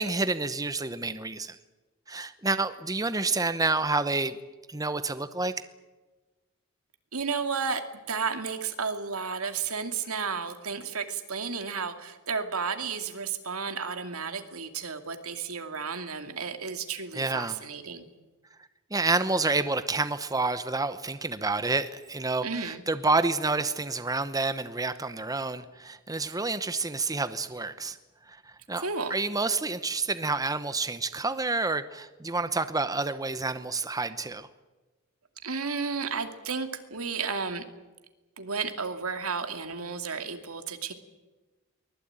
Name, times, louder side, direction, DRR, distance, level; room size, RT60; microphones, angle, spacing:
voice 1, 0.0-1.6 2.1-4.4 4.7-5.5 17.1-17.6 18.9-28.0 28.3-28.4 28.7-28.8 29.1-34.5, right 3 dB, 15° right, 11 dB, 0.9 m, -29 dB
voice 2, 7.1-18.0 22.4-22.8 28.8-29.2 32.4-32.5 35.4-37.6 38.4-40.9, right 5 dB, 80° right, 7 dB, 2.5 m, -32 dB
23.5 x 20.0 x 9.0 m, 1.2 s
head